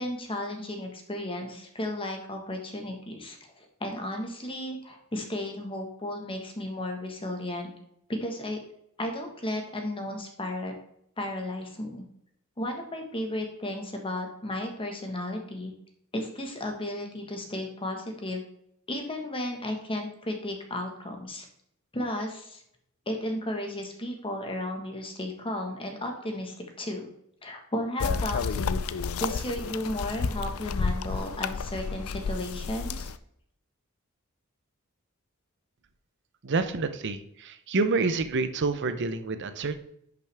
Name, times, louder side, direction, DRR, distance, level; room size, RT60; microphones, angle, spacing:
voice 1, 0.0-7.7 8.1-8.6 9.0-10.7 11.2-12.0 12.6-15.7 16.1-18.4 18.9-21.5 21.9-22.6 23.1-27.1 27.4-28.8 29.2-33.1, left 1 dB, 25° left, 3 dB, 1.4 m, -34 dB
sound 1, 28.0-33.2, left 5 dB, 70° left, 0.4 m, -31 dB
voice 2, 36.4-39.8, right 3 dB, 55° right, 11 dB, 0.7 m, -28 dB
10.5 x 6.0 x 3.5 m, 0.73 s
head